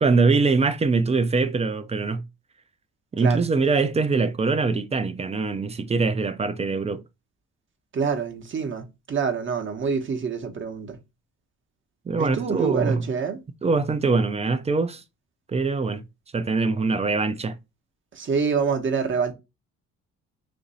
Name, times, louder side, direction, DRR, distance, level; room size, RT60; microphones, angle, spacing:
voice 1, 0.0-2.2 3.1-7.0 12.1-13.1 13.6-15.0 15.5-16.0 16.3-17.6, right 4 dB, 20° right, 0.4 m, -23 dB
voice 2, 7.9-11.0 12.2-13.4 18.1-19.3, right 6 dB, 40° right, 0.8 m, -26 dB
2.9 x 2.6 x 3.9 m
cardioid pair, 90°, 30 cm